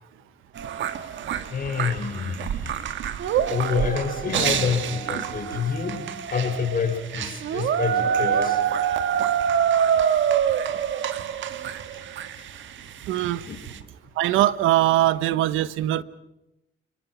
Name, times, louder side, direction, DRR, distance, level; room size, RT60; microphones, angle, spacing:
sound 1, 0.5-13.8, right 8 dB, 75° right, 1.5 m, -26 dB
voice 1, 1.5-2.7 3.5-6.0 6.3-8.6 13.5-13.6, left 6 dB, 45° left, 4 dB, 5.8 m, -27 dB
voice 2, 13.1-13.4 14.2-16.0, right 14 dB, 90° right, 16 dB, 0.9 m, -21 dB
30.0 x 22.0 x 6.1 m, 0.91 s
cardioid pair, 90°, 20 cm